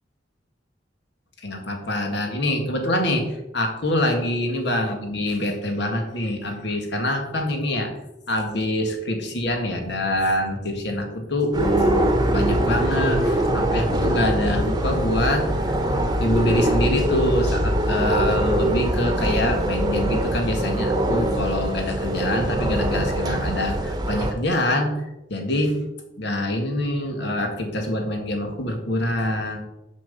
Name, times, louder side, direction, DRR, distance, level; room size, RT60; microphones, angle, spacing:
voice 1, 1.4-3.2 3.5-7.9 8.3-15.7 16.2-24.9 25.3-25.8 26.2-29.6, left 1 dB, 65° left, 3 dB, 2.0 m, -25 dB
sound 1, 11.5-24.3, right 1 dB, 20° right, 1.1 m, -23 dB
7.5 x 5.8 x 7.1 m, 0.94 s
head